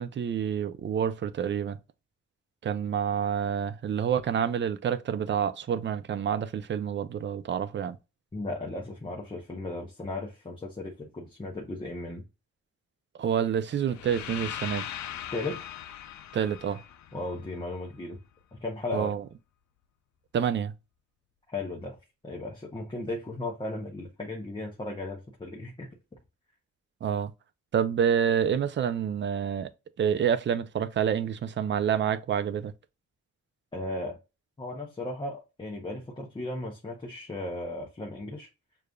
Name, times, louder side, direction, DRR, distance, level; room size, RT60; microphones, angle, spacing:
voice 1, 0.0-1.8 2.6-8.0 13.2-14.9 16.3-16.8 18.9-19.2 20.3-20.7 27.0-27.3 27.7-29.7 30.0-32.7, right 8 dB, 40° right, 0.4 m, -28 dB
voice 2, 8.3-12.2 15.3-15.6 17.1-18.2 18.5-19.1 21.5-22.0 22.2-25.9 33.7-34.2 34.6-38.5, left 2 dB, 15° left, 0.7 m, -36 dB
sound 1, 13.9-17.9, left 10 dB, 75° left, 0.5 m, -40 dB
6.6 x 2.5 x 2.2 m
wide cardioid pair, 165°, 29 cm